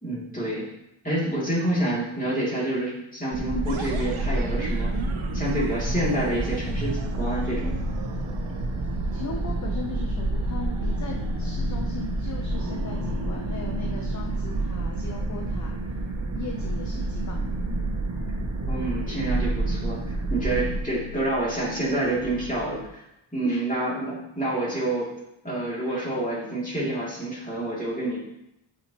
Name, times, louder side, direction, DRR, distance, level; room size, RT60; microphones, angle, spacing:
voice 1, 0.0-0.7 1.0-4.9 5.3-7.8 18.7-23.0 23.3-25.1 25.4-28.2, right 1 dB, 15° left, -6 dB, 2.5 m, -28 dB
sound 1, 3.3-20.8, right 1 dB, 35° right, 0.8 m, -29 dB
sound 2, 3.7-22.9, right 4 dB, 80° right, 0.8 m, -38 dB
voice 2, 9.1-16.0 16.3-17.5 23.4-23.7 25.9-26.0, left 3 dB, 35° left, 1 dB, 0.6 m, -37 dB
8.7 x 4.5 x 2.9 m, 0.84 s
wide cardioid pair, 100°, 49 cm